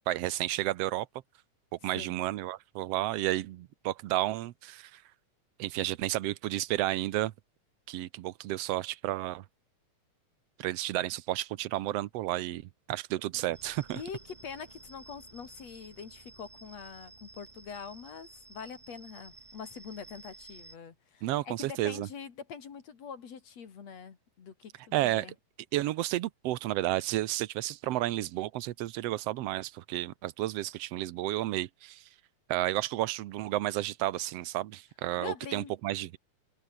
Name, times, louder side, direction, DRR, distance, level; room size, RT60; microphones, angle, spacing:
voice 1, 0.1-1.1 1.8-5.0 5.6-7.3 7.9-9.4 10.6-12.6 12.9-14.0 21.2-22.1 24.9-25.3 25.7-32.0 32.5-36.2, right 15 dB, 80° right, 1.4 m, -32 dB
voice 2, 1.8-2.2 13.9-25.3 35.1-35.7, left 6 dB, 55° left, 3.4 m, -44 dB
sound 1, 13.5-20.8, right 3 dB, 15° right, 1.5 m, -53 dB
omnidirectional pair, 3.8 m